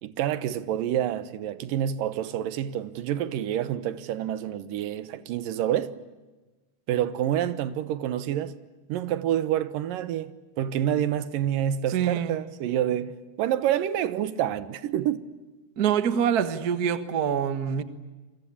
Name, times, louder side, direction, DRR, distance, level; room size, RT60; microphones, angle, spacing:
voice 1, 0.0-5.9 6.9-8.6 8.9-10.3 10.6-15.2, right 11 dB, 85° right, 2.8 m, -28 dB
voice 2, 11.9-12.4 15.8-17.8, right 8 dB, 55° right, 1.0 m, -25 dB
28.5 x 23.0 x 8.5 m
omnidirectional pair, 3.9 m